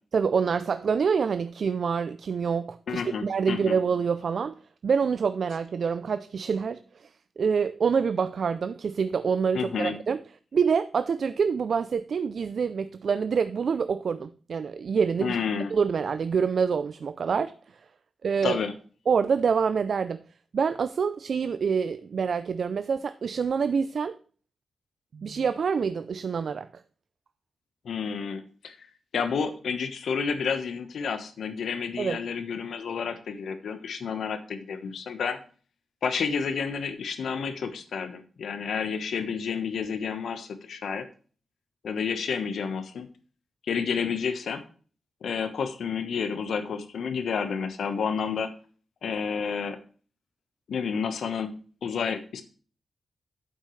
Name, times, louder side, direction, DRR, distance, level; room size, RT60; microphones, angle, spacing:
voice 1, 0.1-4.5 4.8-7.1 7.4-10.2 10.5-15.4 15.7-17.5 18.2-18.6 19.1-20.2 20.5-24.2 25.1-26.7 32.0-32.2, right 6 dB, 50° right, 0.3 m, -26 dB
voice 2, 2.9-3.8 9.5-9.9 15.2-15.7 18.4-18.7 27.8-28.9 29.1-35.4 36.0-41.1 41.8-43.1 43.7-44.6 45.2-48.5 49.0-49.8 50.7-51.5 51.8-52.4, left 6 dB, 75° left, 1.1 m, -30 dB
9.1 x 7.5 x 3.2 m
wide cardioid pair, 180°, 0 cm